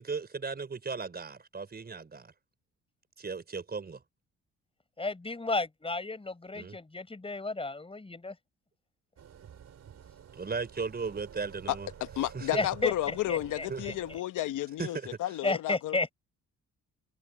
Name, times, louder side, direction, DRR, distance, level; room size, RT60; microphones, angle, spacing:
voice 1, 0.0-2.3 3.2-4.0 6.5-6.8 10.3-11.9 12.3-12.6 13.7-14.0 14.8-15.1, right 4 dB, 30° right, 5.1 m, -36 dB
voice 2, 5.0-8.4 12.5-12.9 13.3-13.9 15.4-16.1, left 3 dB, 20° left, 5.3 m, -32 dB
sound 1, 9.2-14.2, right 8 dB, 60° right, 5.0 m, -50 dB
voice 3, 11.7-16.0, left 14 dB, 85° left, 1.2 m, -32 dB
open air
cardioid pair, 90°, 30 cm